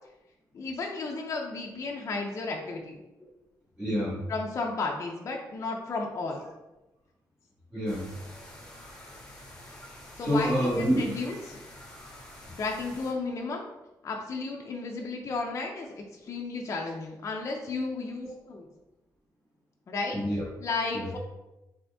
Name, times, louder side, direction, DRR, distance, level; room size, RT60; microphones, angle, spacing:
voice 1, 0.5-3.0 4.3-6.4 10.2-11.6 12.6-13.6 14.0-18.7 19.9-20.1 20.6-21.2, left 3 dB, 40° left, 0 dB, 0.5 m, -33 dB
voice 2, 3.8-4.2 7.7-8.1 10.2-11.1 18.2-18.3 20.1-20.5 20.9-21.1, equal, 15° right, -11 dB, 1.4 m, -27 dB
sound 1, 7.9-13.1, left 1 dB, 10° left, 1.2 m, -48 dB
3.9 x 3.4 x 3.4 m, 0.99 s
cardioid pair, 130°, 7 cm